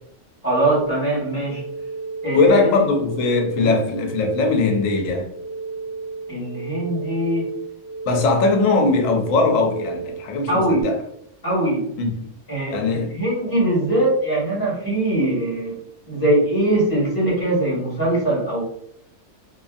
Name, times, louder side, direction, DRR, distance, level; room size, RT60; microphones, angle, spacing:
voice 1, 0.4-1.6 2.2-2.6 3.6-3.8 6.3-7.5 10.5-10.8 11.4-11.8 12.5-15.8 16.1-18.6, right 1 dB, 15° left, 1.4 m, -21 dB
sound 1, 0.8-10.8, right 4 dB, 35° left, 0.9 m, -33 dB
voice 2, 2.3-5.3 8.1-11.0 12.0-12.3 12.7-13.1, left 3 dB, 85° left, 1.0 m, -20 dB
2.6 x 2.5 x 2.3 m
omnidirectional pair, 1.3 m